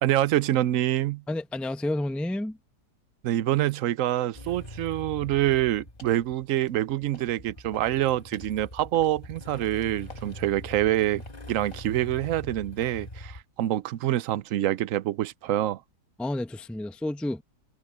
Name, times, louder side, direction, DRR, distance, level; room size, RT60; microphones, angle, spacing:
voice 1, 0.0-1.2 3.2-11.2 11.5-15.8, right 13 dB, 65° right, 0.8 m, -26 dB
voice 2, 1.3-2.6 16.2-17.4, left 1 dB, ahead, 0.7 m, -30 dB
Motorcycle / Engine starting, 4.3-13.4, left 1 dB, 25° left, 3.5 m, -43 dB
sound 1, 5.3-5.6 6.0-6.2 6.6-7.4 7.7-13.2, left 4 dB, 50° left, 5.3 m, -53 dB
omnidirectional pair, 1.8 m